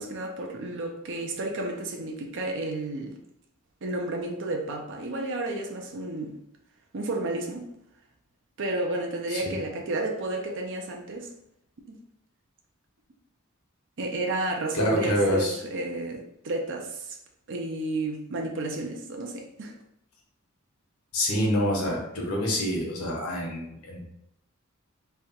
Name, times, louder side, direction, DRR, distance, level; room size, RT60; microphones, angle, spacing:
voice 1, 0.0-3.2 3.8-6.4 6.9-7.7 8.6-11.3 11.9-12.0 14.0-17.2 17.5-19.7, right 2 dB, 60° right, 0.6 m, -31 dB
voice 2, 14.7-15.5 21.1-24.0, equal, 85° left, 1.2 m, -26 dB
3.3 x 2.3 x 4.3 m
head